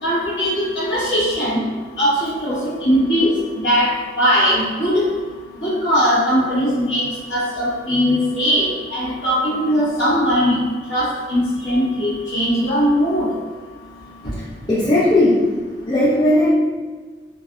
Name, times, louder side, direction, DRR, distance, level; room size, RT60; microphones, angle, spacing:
voice 1, 0.0-1.6 2.0-3.3 3.6-5.0 5.6-7.0 7.3-8.6 8.9-13.3, equal, 75° left, -11 dB, 1.1 m, -19 dB
voice 2, 14.7-15.5 15.9-16.5, left 1 dB, 25° left, -9 dB, 0.4 m, -16 dB
3.2 x 2.3 x 2.5 m, 1.4 s
head